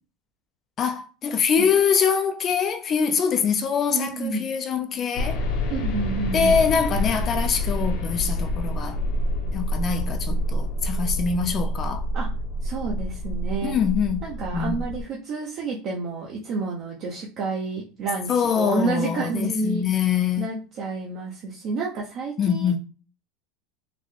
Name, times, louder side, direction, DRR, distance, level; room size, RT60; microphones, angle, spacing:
voice 1, 0.8-5.4 6.3-9.0 9.5-12.1 13.6-14.3 14.5-14.8 18.3-20.5 22.4-22.8, left 6 dB, 30° left, 0.3 m, -24 dB
voice 2, 3.9-4.4 5.7-6.6 12.1-12.3 12.6-13.8 14.2-18.3 18.6-19.8 20.4-22.7, right 4 dB, 40° right, 0.6 m, -29 dB
sound 1, 5.2-15.0, left 1 dB, 60° left, 0.8 m, -27 dB
4.0 x 2.1 x 3.1 m
supercardioid pair, 150°, 0 cm